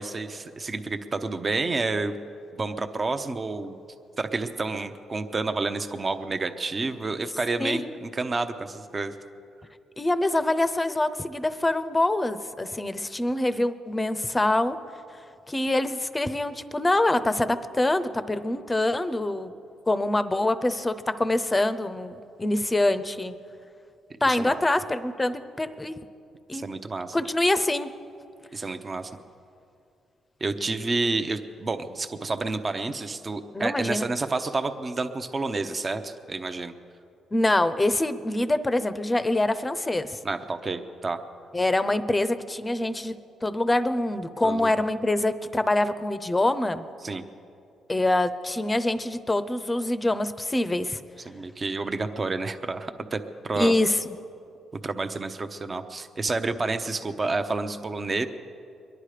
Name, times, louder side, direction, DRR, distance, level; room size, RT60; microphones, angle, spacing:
voice 1, 0.0-2.2 2.5-3.8 4.2-9.1 24.2-24.6 26.5-27.2 28.5-29.1 30.4-36.7 40.2-41.2 44.4-44.7 47.0-47.2 51.3-53.7 54.7-58.3, right 3 dB, 30° right, 8 dB, 0.8 m, -29 dB
voice 2, 7.6-8.0 10.0-14.8 15.5-19.5 19.9-23.3 24.2-26.0 26.5-26.6 27.1-27.9 33.5-34.1 37.3-40.2 41.5-43.2 43.4-46.9 47.9-51.0 53.6-54.0, left 2 dB, 15° left, 12 dB, 0.7 m, -25 dB
22.5 x 10.5 x 5.0 m, 2.5 s
cardioid pair, 90°, 0 cm